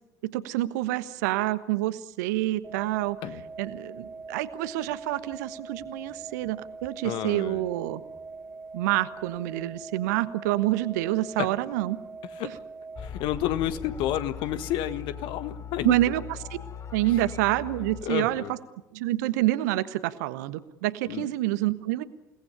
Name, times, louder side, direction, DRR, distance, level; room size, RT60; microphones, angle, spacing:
voice 1, 0.2-3.2 3.6-8.0 8.7-12.0 15.8-16.6 16.9-18.6 18.9-22.0, right 16 dB, 60° right, 13 dB, 1.3 m, -27 dB
sound 1, 2.6-13.1, right 3 dB, 25° right, 1.5 m, -43 dB
voice 2, 7.0-7.7 11.4-11.5 12.4-12.5 13.0-15.9 18.0-18.5 21.1-21.3, left 12 dB, 50° left, 12 dB, 1.6 m, -30 dB
sound 2, 12.9-18.0, left 7 dB, 30° left, 6.1 m, -39 dB
29.0 x 18.5 x 9.9 m, 0.95 s
figure-of-eight pair, 60°, 10 cm